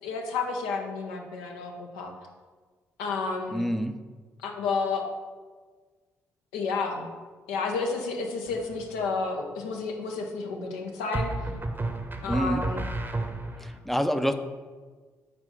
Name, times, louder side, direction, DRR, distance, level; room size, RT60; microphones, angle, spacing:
voice 1, 0.0-2.1 3.0-3.6 4.4-5.0 6.5-7.1 7.5-11.3 12.2-12.9, left 4 dB, 75° left, 2 dB, 0.7 m, -31 dB
voice 2, 3.5-3.9 12.2-12.6 13.6-14.3, equal, 5° left, 8 dB, 0.5 m, -27 dB
sound 1, 8.5-9.0 11.1-13.8, right 2 dB, 25° right, 0.8 m, -32 dB
4.4 x 4.2 x 5.5 m, 1.4 s
figure-of-eight pair, 40°, 8 cm